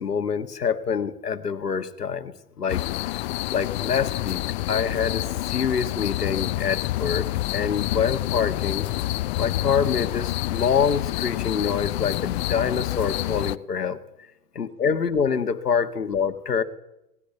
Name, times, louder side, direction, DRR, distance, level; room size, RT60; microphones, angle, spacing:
voice 1, 0.0-2.9 3.5-4.4 4.7-8.9 9.4-14.0 14.6-16.6, left 6 dB, 85° left, 10 dB, 1.8 m, -26 dB
sound 1, 2.7-13.6, left 17 dB, 45° left, 0.8 m, -28 dB
18.5 x 18.5 x 8.4 m, 0.87 s
hypercardioid pair, 110°, 46 cm